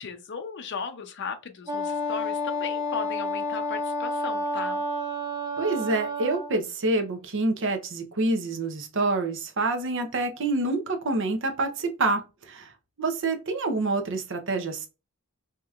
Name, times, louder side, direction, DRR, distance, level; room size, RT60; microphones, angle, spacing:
voice 1, 0.0-4.8, left 5 dB, 55° left, 0.6 m, -36 dB
Wind instrument woodwind instrument, 1.7-6.5, left 1 dB, 20° right, 1.8 m, -30 dB
voice 2, 5.6-12.2 12.5-12.7 13.0-14.9, right 2 dB, 60° right, 0.8 m, -27 dB
4.8 x 2.9 x 2.4 m
head